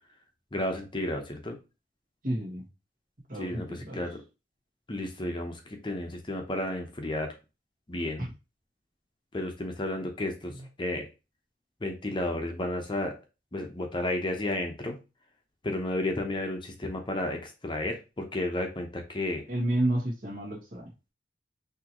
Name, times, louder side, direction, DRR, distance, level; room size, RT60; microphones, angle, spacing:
voice 1, 0.5-1.6 3.3-4.2 4.9-7.3 7.9-8.2 9.3-11.1 11.8-13.1 13.5-15.0 15.6-19.4, left 1 dB, 30° left, 4 dB, 0.8 m, -32 dB
voice 2, 2.2-2.6 3.3-4.0 8.2-8.3 19.5-20.9, right 1 dB, 50° right, -1 dB, 1.7 m, -30 dB
6.1 x 2.9 x 3.0 m, 0.28 s
head